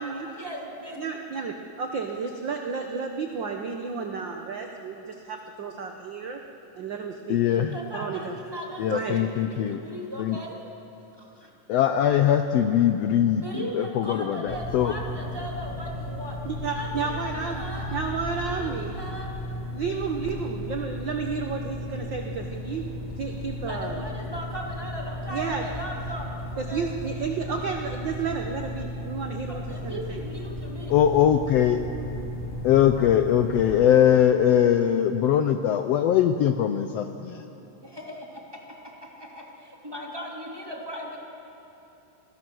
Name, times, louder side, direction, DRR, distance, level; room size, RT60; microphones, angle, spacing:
voice 1, 0.4-1.0 7.7-10.5 11.2-11.5 13.4-16.4 16.7-18.0 18.4-19.6 19.9-20.0 23.6-26.9 29.5-30.9 31.3-31.4 37.8-38.4 39.1-41.2, equal, 10° right, -2 dB, 2.7 m, -38 dB
voice 2, 1.0-6.4 6.7-8.3 8.9-9.2 16.4-17.6 17.9-19.0 19.7-22.9 23.2-24.0 25.3-25.7 26.6-30.2, right 5 dB, 60° right, 3 dB, 1.3 m, -32 dB
voice 3, 7.3-7.8 8.8-9.8 10.2-10.4 11.7-14.9 30.9-31.8 32.6-37.4, left 10 dB, 75° left, 8 dB, 1.6 m, -21 dB
sound 1, 14.5-33.8, left 1 dB, 20° left, 4.1 m, -35 dB
29.5 x 20.0 x 6.3 m, 3.0 s
omnidirectional pair, 3.4 m